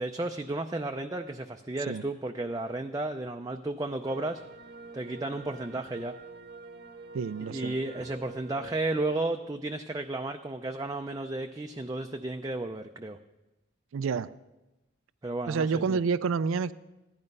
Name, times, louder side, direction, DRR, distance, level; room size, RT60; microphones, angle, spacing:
voice 1, 0.0-4.4 4.9-6.2 7.4-13.2 15.2-16.0, right 2 dB, 20° right, 5 dB, 0.4 m, -33 dB
sound 1, 4.0-9.3, right 3 dB, 50° right, 0.8 m, -47 dB
voice 2, 7.1-7.7 13.9-14.3 15.5-16.7, right 5 dB, 85° right, 17 dB, 0.4 m, -28 dB
15.0 x 11.0 x 5.4 m, 1.0 s
head